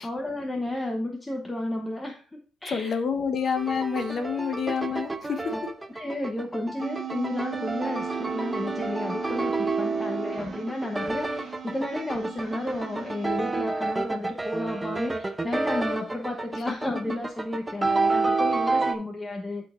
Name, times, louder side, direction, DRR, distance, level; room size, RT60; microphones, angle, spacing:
voice 1, 0.0-3.0 4.1-4.2 5.5-5.6 5.9-19.7, left 1 dB, 15° left, 2 dB, 0.9 m, -32 dB
voice 2, 2.7-5.6, left 6 dB, 50° left, 8 dB, 1.0 m, -28 dB
sound 1, 3.6-19.0, right 3 dB, 20° right, 0.6 m, -29 dB
sound 2, 6.8-13.3, right 10 dB, 50° right, 1.3 m, -38 dB
10.5 x 4.0 x 2.5 m, 0.42 s
cardioid pair, 90°, 0 cm